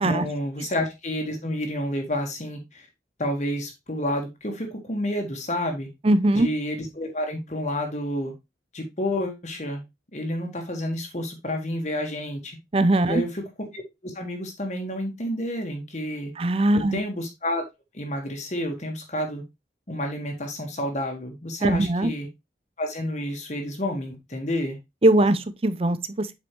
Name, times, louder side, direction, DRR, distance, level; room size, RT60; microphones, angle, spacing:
voice 1, 0.0-2.9 3.2-5.9 6.3-8.3 8.7-9.8 10.1-12.6 13.0-16.3 16.7-17.7 17.9-19.4 19.9-22.3 22.8-24.8, left 1 dB, 40° left, 1.5 m, -30 dB
voice 2, 6.0-6.5 12.7-13.2 16.4-17.0 21.6-22.1 25.0-26.3, right 1 dB, 30° right, 0.6 m, -20 dB
8.1 x 5.3 x 3.0 m
head